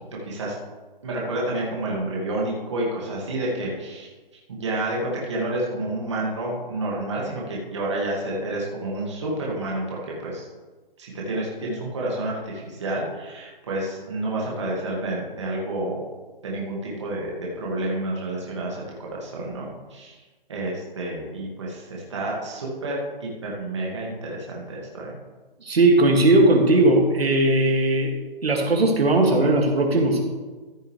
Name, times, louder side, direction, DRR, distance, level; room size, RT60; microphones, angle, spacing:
voice 1, 0.3-0.6 1.0-4.1 4.5-10.5 11.0-16.0 16.4-20.2 20.5-25.2, right 1 dB, 30° right, -4 dB, 2.0 m, -29 dB
voice 2, 25.6-28.1 28.4-30.2, right 2 dB, 85° right, 1 dB, 2.3 m, -18 dB
14.5 x 6.7 x 3.3 m, 1.3 s
hypercardioid pair, 175°, 30 cm